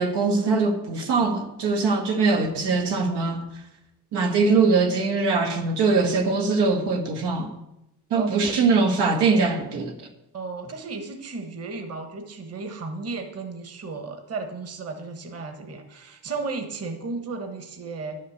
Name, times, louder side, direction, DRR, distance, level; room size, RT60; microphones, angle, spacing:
voice 1, 0.0-3.4 4.1-7.5 8.1-9.9, right 4 dB, 90° right, 2.0 m, -22 dB
voice 2, 8.1-8.6 10.3-18.2, right 4 dB, 40° right, 1.3 m, -34 dB
11.0 x 6.5 x 8.5 m
wide cardioid pair, 160°, 39 cm